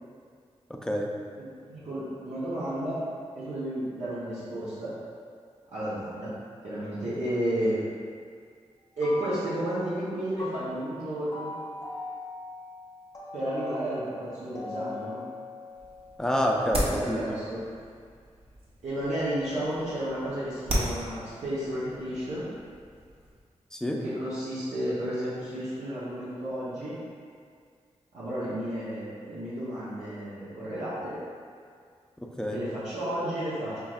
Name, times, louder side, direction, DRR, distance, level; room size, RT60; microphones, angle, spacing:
voice 1, 0.7-1.1 16.2-17.2 23.7-24.0 32.2-32.6, equal, 5° left, -1 dB, 0.5 m, -28 dB
voice 2, 1.4-3.0 3.3-4.9 5.7-6.3 6.6-7.8 9.0-11.5 13.3-15.2 16.7-17.6 18.8-22.5 24.0-27.0 28.1-31.2 32.5-33.8, right 1 dB, 90° right, -11 dB, 0.9 m, -32 dB
sound 1, 8.8-10.0 10.4-16.5, left 2 dB, 30° left, 0.8 m, -41 dB
sound 2, 15.7-23.4, equal, 55° right, 0.8 m, -37 dB
5.6 x 3.1 x 2.5 m, 2.1 s
cardioid pair, 65°, 12 cm